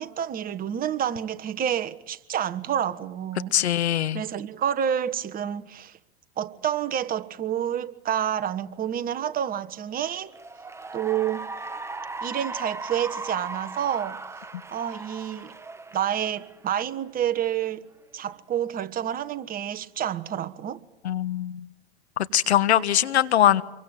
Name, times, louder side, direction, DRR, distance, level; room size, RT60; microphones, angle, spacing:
voice 1, 0.0-3.5 4.1-6.0 6.4-10.3 10.9-11.4 12.2-14.2 14.7-15.5 15.9-17.8 18.1-20.8, right 9 dB, 25° right, 1.4 m, -28 dB
voice 2, 3.5-4.2 21.0-21.7 22.2-23.6, left 11 dB, 80° left, 1.5 m, -22 dB
Cheering / Applause, 10.2-16.9, right 3 dB, 10° right, 1.3 m, -38 dB
27.5 x 23.5 x 9.2 m
hypercardioid pair, 110°, 32 cm